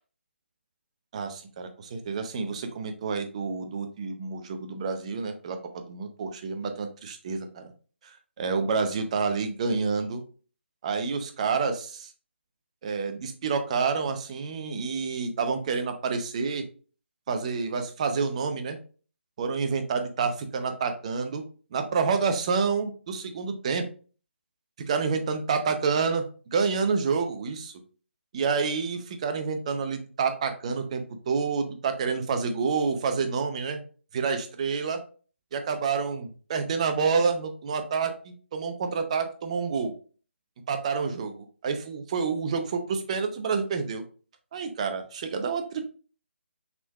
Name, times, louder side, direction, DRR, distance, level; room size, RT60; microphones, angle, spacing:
voice 1, 1.1-7.7 8.0-10.2 10.8-12.1 12.8-16.6 17.3-18.8 19.4-21.4 21.7-23.8 24.9-26.2 26.5-27.7 28.3-33.8 34.1-35.0 35.5-39.9 40.7-44.0 44.5-45.8, right 5 dB, 30° right, 7 dB, 0.6 m, -28 dB
5.8 x 3.7 x 2.3 m, 0.40 s
figure-of-eight pair, 150°, 7 cm